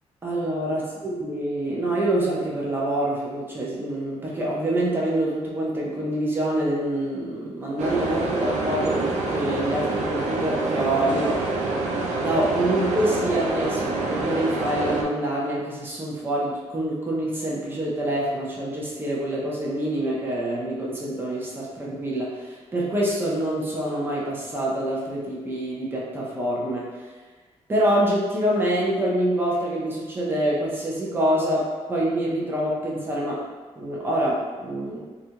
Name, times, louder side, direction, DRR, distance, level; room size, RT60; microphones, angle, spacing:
voice 1, 0.2-11.4 12.2-27.1 27.7-33.4 33.7-35.0, right 1 dB, 20° right, -5 dB, 0.5 m, -26 dB
sound 1, 7.8-15.0, right 2 dB, 85° right, 0.4 m, -26 dB
2.4 x 2.2 x 2.8 m, 1.3 s
wide cardioid pair, 155°, 12 cm